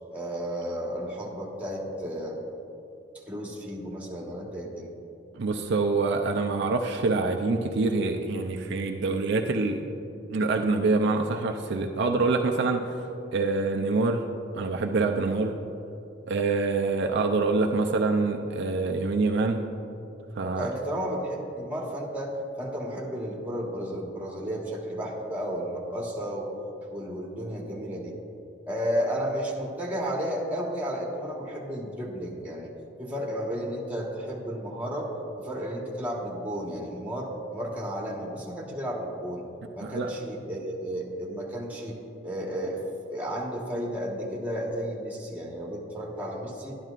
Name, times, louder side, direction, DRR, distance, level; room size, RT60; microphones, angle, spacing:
voice 1, 0.1-2.4 3.3-4.9 20.6-26.5 26.9-28.2 28.7-32.7 33.0-35.1 35.4-39.5 39.7-42.8 43.1-46.7, equal, 10° right, -3 dB, 1.3 m, -33 dB
voice 2, 5.3-9.8 10.3-13.0 13.3-14.2 14.5-15.5 16.3-19.6 20.4-20.7 39.8-40.1, right 3 dB, 60° right, 3 dB, 0.5 m, -25 dB
12.5 x 10.5 x 2.5 m, 2.8 s
head